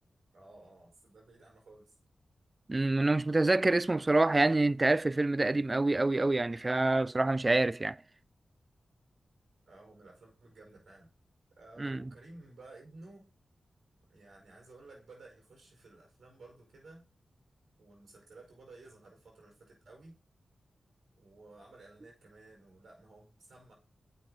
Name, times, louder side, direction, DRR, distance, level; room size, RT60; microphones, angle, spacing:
voice 1, 0.3-1.9 9.7-11.1 11.5-13.3 14.1-17.0 17.8-20.2 21.1-23.7, right 2 dB, 75° right, 4.8 m, -55 dB
voice 2, 2.7-8.0 11.8-12.1, right 2 dB, 30° right, 0.3 m, -27 dB
7.8 x 6.0 x 3.9 m
cardioid pair, 55°, 0 cm